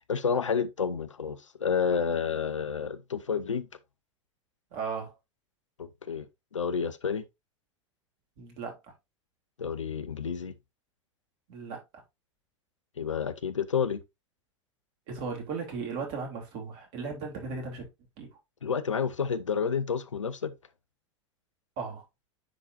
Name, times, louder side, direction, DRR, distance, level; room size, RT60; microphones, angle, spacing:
voice 1, 0.1-3.7 5.8-6.3 6.5-7.2 9.6-10.5 13.0-14.0 18.6-20.5, left 6 dB, 85° left, 0.7 m, -30 dB
voice 2, 4.7-5.1 8.4-8.9 11.5-11.8 15.1-17.9 18.2-18.3 21.8-22.0, right 5 dB, 50° right, 3.1 m, -36 dB
9.7 x 3.9 x 2.6 m
figure-of-eight pair, 90°, 16 cm